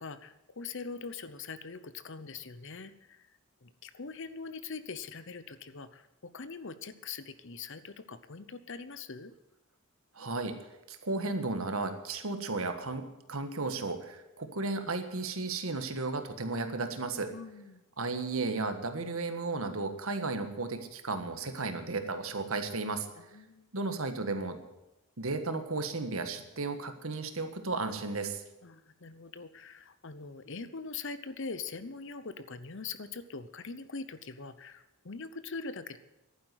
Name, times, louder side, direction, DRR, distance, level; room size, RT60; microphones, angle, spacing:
voice 1, 0.0-3.3 3.6-9.3 17.3-17.8 23.2-23.7 28.6-36.0, left 4 dB, 55° left, 13 dB, 0.8 m, -42 dB
voice 2, 10.1-10.5 10.9-17.3 18.0-23.1 23.7-24.6 25.2-28.4, right 3 dB, 70° right, 8 dB, 1.5 m, -34 dB
11.5 x 9.4 x 9.4 m, 0.96 s
head